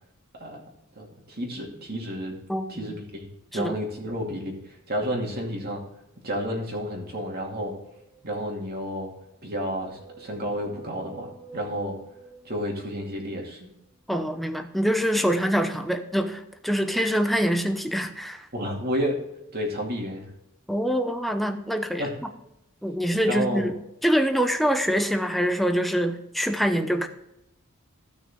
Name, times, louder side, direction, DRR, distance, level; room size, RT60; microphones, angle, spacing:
voice 1, 1.0-2.4 2.7-3.3 3.5-5.8 6.2-7.7 8.2-9.1 9.4-12.0 12.4-13.7 18.5-19.2 19.5-20.3 22.0-22.1 23.2-23.7, equal, 45° right, 0 dB, 2.5 m, -31 dB
sound 1, 6.9-8.5 9.3-13.2, right 4 dB, 20° right, 3.3 m, -48 dB
voice 2, 14.1-18.5 20.7-22.0 22.8-23.7 24.0-27.1, equal, ahead, 7 dB, 0.7 m, -25 dB
14.5 x 6.2 x 3.6 m, 0.84 s
head